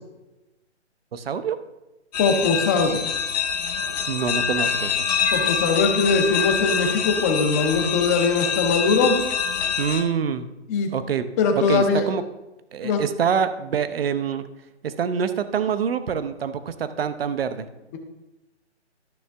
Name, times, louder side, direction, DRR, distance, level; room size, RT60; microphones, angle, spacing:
voice 1, 1.1-1.6 4.0-5.0 9.8-10.5 10.9-11.3 11.6-12.3 12.7-14.5 14.8-17.7, right 7 dB, 55° right, 11 dB, 0.8 m, -25 dB
sound 1, 2.1-10.0, left 7 dB, 35° left, 1.0 m, -25 dB
voice 2, 2.2-3.0 5.3-9.2 10.7-10.9 11.4-12.0 12.8-13.0, left 4 dB, 15° left, 4 dB, 0.6 m, -21 dB
12.5 x 6.3 x 3.4 m, 1.0 s
hypercardioid pair, 150°, 35 cm